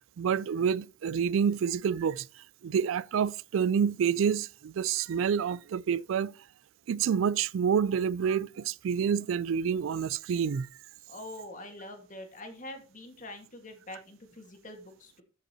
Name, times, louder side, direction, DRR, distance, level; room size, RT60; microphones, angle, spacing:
voice 1, 0.2-2.3 2.6-6.3 6.9-10.7, right 7 dB, 80° right, 0.3 m, -28 dB
voice 2, 11.1-15.2, left 1 dB, 40° left, 1.7 m, -45 dB
14.0 x 5.4 x 2.8 m
head